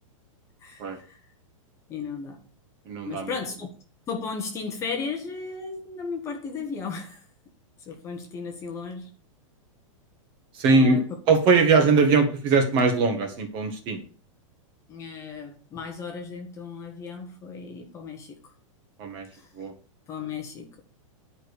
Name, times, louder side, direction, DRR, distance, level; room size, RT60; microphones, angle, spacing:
voice 1, 0.6-1.2 1.9-2.4 3.0-3.7 4.1-7.3 7.9-9.1 10.7-11.2 11.8-11.9 14.9-18.5 19.3-19.5 20.1-20.8, left 5 dB, 15° left, 3 dB, 1.3 m, -35 dB
voice 2, 2.9-3.3 10.5-11.0 11.3-14.0 19.0-19.3 19.6-19.7, right 4 dB, 30° right, 6 dB, 1.8 m, -21 dB
11.0 x 5.2 x 6.6 m, 0.40 s
supercardioid pair, 170°, 17 cm